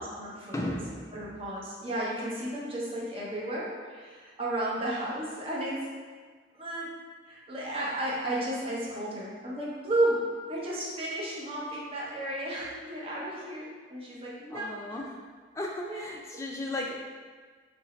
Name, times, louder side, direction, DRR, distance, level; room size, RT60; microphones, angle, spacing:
voice 1, 0.0-0.8 1.1-5.9 6.5-6.9 7.3-15.0 15.9-16.0, right 1 dB, 30° right, -6 dB, 0.7 m, -33 dB
voice 2, 0.5-1.3 14.5-15.1 15.5-17.1, left 1 dB, 15° left, -1 dB, 0.3 m, -35 dB
2.8 x 2.6 x 4.2 m, 1.5 s
head